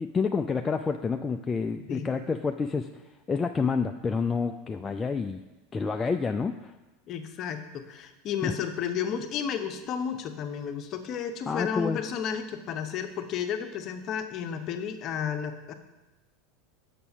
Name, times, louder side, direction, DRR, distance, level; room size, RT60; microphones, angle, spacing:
voice 1, 0.0-2.9 3.3-5.4 5.7-6.7 8.4-8.5 11.5-12.0, left 5 dB, 20° left, 5 dB, 0.4 m, -28 dB
voice 2, 7.1-15.7, left 7 dB, 40° left, 7 dB, 0.8 m, -32 dB
6.9 x 6.0 x 5.3 m, 1.1 s
figure-of-eight pair, 80°, 0 cm